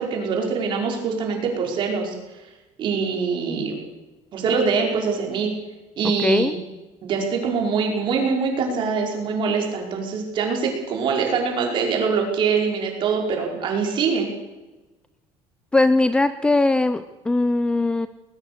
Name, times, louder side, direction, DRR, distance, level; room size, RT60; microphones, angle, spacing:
voice 1, 0.0-2.1 2.8-3.7 4.3-5.5 6.0-6.6 7.0-14.3, right 5 dB, 45° right, 1 dB, 5.2 m, -23 dB
voice 2, 6.2-6.6 15.7-18.1, left 2 dB, 10° left, 12 dB, 0.6 m, -20 dB
20.0 x 19.0 x 6.9 m, 1.1 s
cardioid pair, 165°, 12 cm